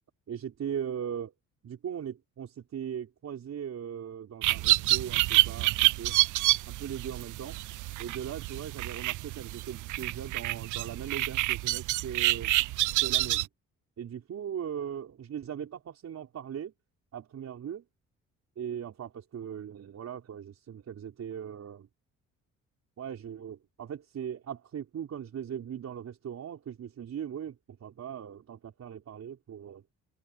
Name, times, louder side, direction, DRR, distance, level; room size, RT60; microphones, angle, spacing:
voice 1, 0.3-1.3 1.6-6.2 6.7-7.6 8.0-12.5 13.0-13.5 14.0-16.7 17.1-17.8 18.6-21.9 23.0-29.8, right 9 dB, 60° right, 5.3 m, -39 dB
sound 1, 4.4-13.5, right 17 dB, 80° right, 0.5 m, -28 dB
open air
cardioid pair, 90°, 30 cm